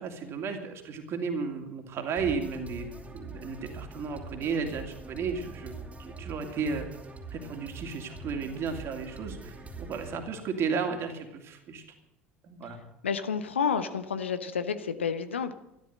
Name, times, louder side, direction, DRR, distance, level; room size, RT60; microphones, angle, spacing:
voice 1, 0.0-2.9 3.1-6.9 7.3-11.8 12.4-12.8, right 5 dB, 40° right, 5 dB, 2.7 m, -34 dB
sound 1, 2.2-10.2, right 3 dB, 20° right, 2.6 m, -43 dB
voice 2, 13.0-15.5, left 6 dB, 75° left, 11 dB, 1.0 m, -30 dB
13.0 x 12.5 x 7.8 m, 0.86 s
figure-of-eight pair, 65°, 6 cm